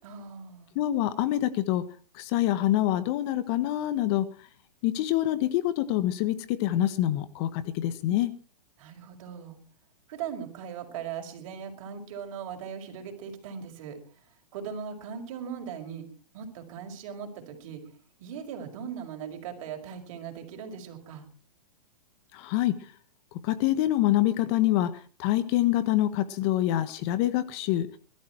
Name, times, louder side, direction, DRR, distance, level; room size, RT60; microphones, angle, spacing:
voice 1, 0.0-0.8 8.8-9.6 10.1-14.0 14.5-16.1 16.3-17.9 18.2-21.3, right 7 dB, 50° right, 4 dB, 5.5 m, -39 dB
voice 2, 0.7-1.8 2.1-4.3 4.8-8.3 22.3-22.8 23.4-28.0, left 14 dB, 40° left, 13 dB, 1.5 m, -26 dB
21.0 x 13.5 x 4.7 m, 0.39 s
hypercardioid pair, 140°, 20 cm